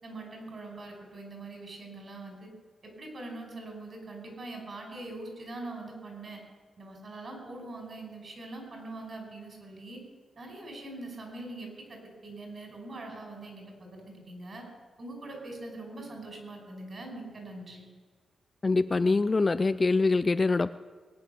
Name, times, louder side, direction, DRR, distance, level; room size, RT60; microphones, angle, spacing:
voice 1, 0.0-2.5 2.8-6.4 6.8-10.0 10.4-14.6 15.0-17.9, right 2 dB, 45° right, 2 dB, 5.1 m, -43 dB
voice 2, 18.6-20.8, left 3 dB, 25° left, 13 dB, 0.4 m, -24 dB
21.0 x 9.5 x 6.8 m, 1.5 s
wide cardioid pair, 130°, 0 cm